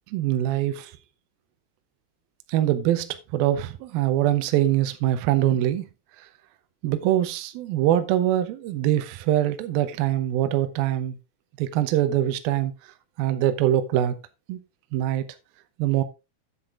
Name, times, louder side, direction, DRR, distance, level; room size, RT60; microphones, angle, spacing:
voice 1, 0.1-0.9 2.5-5.9 6.8-11.2 11.6-12.7 13.2-14.1 14.5-14.6 14.9-15.3 15.8-16.0, right 12 dB, 75° right, 2.5 m, -23 dB
9.9 x 7.6 x 3.6 m
omnidirectional pair, 4.9 m